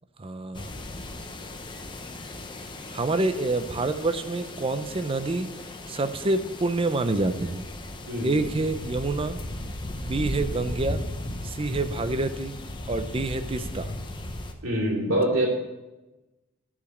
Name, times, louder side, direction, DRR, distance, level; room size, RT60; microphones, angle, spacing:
voice 1, 0.2-0.7 2.9-5.5 5.9-7.6 8.2-9.4 10.0-11.0 11.4-12.5 12.9-13.9, right 2 dB, 25° right, 10 dB, 0.5 m, -27 dB
sound 1, 0.5-14.5, left 1 dB, 25° left, 0.7 m, -36 dB
voice 2, 8.1-8.4 14.6-15.5, right 1 dB, 75° right, -1 dB, 2.6 m, -25 dB
10.0 x 4.9 x 6.6 m, 1.1 s
head